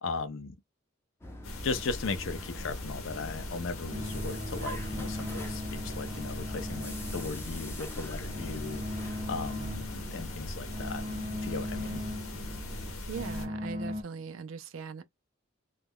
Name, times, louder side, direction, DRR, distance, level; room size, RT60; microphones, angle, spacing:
voice 1, 0.0-0.5 1.6-11.0 11.4-12.0, left 4 dB, 65° left, 0.5 m, -37 dB
sound 1, 1.2-13.0, equal, 10° left, 0.5 m, -45 dB
sound 2, 1.4-13.5, left 1 dB, 90° left, 0.8 m, -40 dB
sound 3, 3.9-14.0, left 1 dB, 30° right, 0.7 m, -39 dB
voice 2, 13.1-15.0, right 6 dB, 70° right, 0.4 m, -40 dB
2.3 x 2.2 x 3.4 m
head